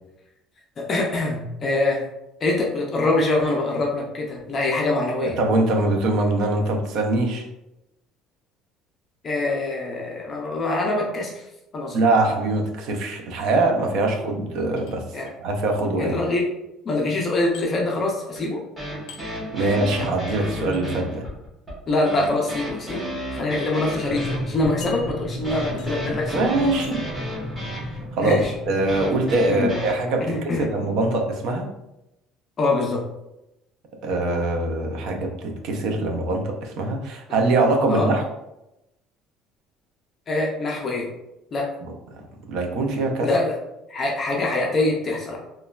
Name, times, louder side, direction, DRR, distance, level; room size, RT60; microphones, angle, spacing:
voice 1, 0.8-2.0 2.4-5.4 9.2-11.4 11.7-12.0 15.1-15.3 16.0-16.4 16.8-18.6 19.6-19.7 21.9-23.0 23.3-26.5 28.2-28.5 29.5-29.7 30.3-30.7 32.6-33.0 37.3-37.4 37.9-38.1 40.3-41.1 41.5-41.6 43.2-43.6 43.9-45.4, left 2 dB, 25° left, -1 dB, 0.4 m, -24 dB
voice 2, 5.2-7.5 11.9-15.0 15.4-16.1 19.5-21.3 26.3-27.1 28.2-28.4 28.7-31.7 34.0-38.2 41.8-42.2 42.5-43.3, right 2 dB, 55° right, 3 dB, 0.4 m, -23 dB
sound 1, 14.8-15.4 17.5-17.7 19.1-19.3 20.7-20.8 22.2-22.5 23.2-23.3 23.7-23.8 24.8-25.4 25.8-26.1 26.8-27.1 28.3-28.5, left 6 dB, 90° left, 0.5 m, -43 dB
sound 2, 18.4-29.9, equal, 10° right, 0.9 m, -33 dB
sound 3, 24.0-29.4, equal, 85° right, 0.7 m, -33 dB
3.0 x 2.1 x 2.2 m, 0.89 s
cardioid pair, 175°, 0 cm